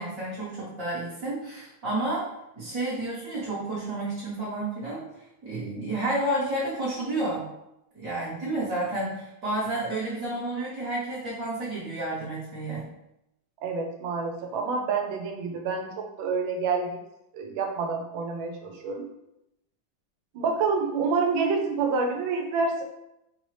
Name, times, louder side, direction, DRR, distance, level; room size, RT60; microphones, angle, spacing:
voice 1, 0.0-2.3 2.6-5.1 5.4-7.5 7.9-12.8, right 2 dB, 45° right, -9 dB, 1.4 m, -30 dB
voice 2, 13.6-17.0 17.3-19.1 20.3-22.8, right 4 dB, 80° right, 3 dB, 1.3 m, -28 dB
4.6 x 2.7 x 3.2 m, 0.85 s
omnidirectional pair, 2.3 m